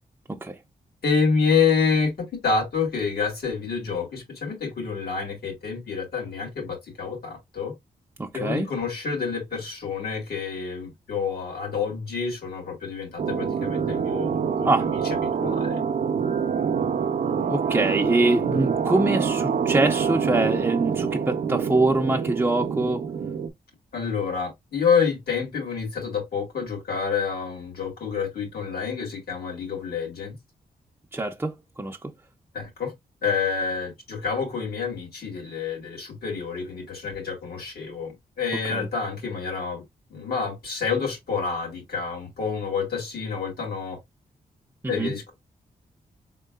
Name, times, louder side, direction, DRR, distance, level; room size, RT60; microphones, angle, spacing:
voice 1, 1.0-7.7 8.3-15.8 23.9-30.4 32.5-32.9 33.2-39.8 40.1-44.0 44.9-45.3, left 5 dB, 80° left, 2.2 m, -28 dB
voice 2, 8.2-8.7 14.6-14.9 17.5-23.0 31.1-32.0 38.7-38.9 44.8-45.1, right 2 dB, 15° right, 0.5 m, -24 dB
sound 1, 13.2-23.5, right 6 dB, 60° right, 0.6 m, -26 dB
4.6 x 3.7 x 2.2 m
cardioid pair, 80°, 16 cm